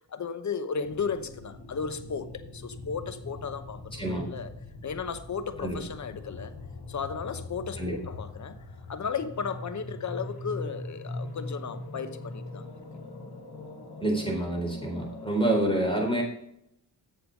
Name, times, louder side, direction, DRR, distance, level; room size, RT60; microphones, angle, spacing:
voice 1, 0.0-4.5 4.8-6.5 6.9-8.6 8.9-12.8, left 6 dB, 40° left, 0.9 m, -35 dB
sound 1, 0.8-15.4, left 2 dB, 60° left, 2.0 m, -42 dB
voice 2, 14.0-16.2, right 1 dB, 10° left, 3.8 m, -27 dB
8.1 x 6.7 x 5.3 m
cardioid pair, 55°, 44 cm